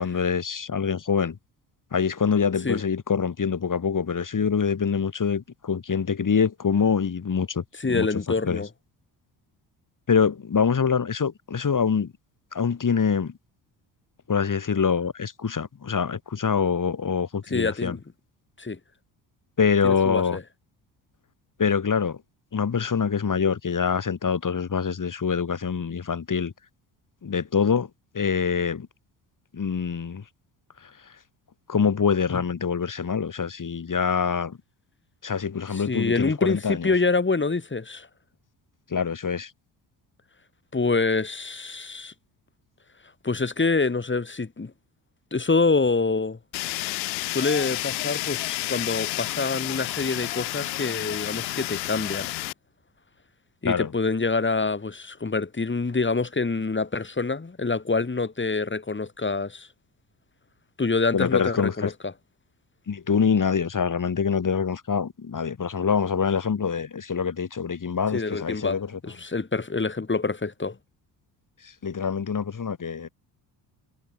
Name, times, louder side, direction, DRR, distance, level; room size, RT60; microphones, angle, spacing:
voice 1, 0.0-1.4 1.9-8.1 8.4-8.6 10.1-12.1 12.5-13.4 14.3-18.0 19.6-20.4 21.6-22.2 22.5-26.5 27.2-28.9 29.5-30.2 30.8-31.2 31.7-34.6 35.2-36.9 38.9-39.5 53.6-53.9 61.1-61.9 62.9-69.0 71.6-73.1, left 6 dB, 40° left, 5.2 m, -25 dB
voice 2, 7.8-8.7 17.5-18.0 18.6-18.8 19.8-20.4 35.7-38.1 40.7-42.1 43.2-44.7 45.3-46.4 47.3-52.3 53.6-59.7 60.8-62.1 68.1-68.8 69.0-70.8, left 3 dB, 25° left, 4.5 m, -26 dB
Fire, 46.5-52.5, left 20 dB, 90° left, 6.2 m, -30 dB
hypercardioid pair, 55°, 49 cm